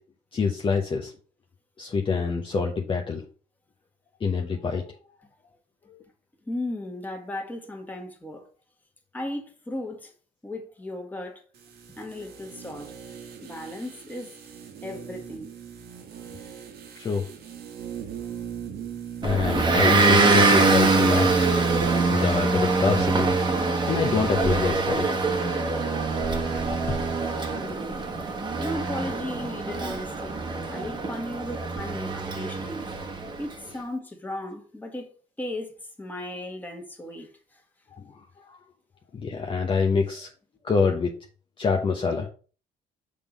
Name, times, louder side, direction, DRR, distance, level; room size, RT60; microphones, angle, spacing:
voice 1, 0.3-1.1 1.8-3.2 4.2-4.8 17.0-17.3 19.2-21.5 22.1-23.3 23.9-25.1 39.1-40.3 40.6-41.1 41.6-42.3, left 5 dB, 30° left, 0.9 m, -25 dB
voice 2, 6.5-8.4 9.1-10.1 10.4-11.4 11.9-12.9 13.4-14.3 14.8-15.5 27.5-32.9 33.4-35.1 35.4-37.6, left 1 dB, 10° left, 1.7 m, -36 dB
sound 1, 11.5-22.2 22.5-22.6, right 8 dB, 70° right, 1.5 m, -39 dB
Motor vehicle (road) / Engine, 19.2-33.4, right 3 dB, 25° right, 1.3 m, -24 dB
6.7 x 3.8 x 5.1 m
cardioid pair, 110°, 17 cm